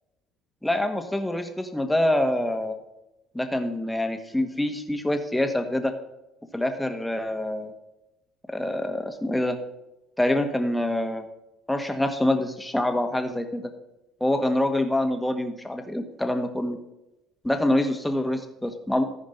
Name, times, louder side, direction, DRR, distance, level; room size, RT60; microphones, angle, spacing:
voice 1, 0.6-2.8 3.3-5.9 6.5-7.7 8.5-9.6 10.2-11.2 11.7-13.7 14.2-16.8 17.4-19.0, left 1 dB, 5° left, 6 dB, 1.6 m, -25 dB
14.5 x 5.1 x 5.3 m, 0.94 s
hypercardioid pair, 70°, 0 cm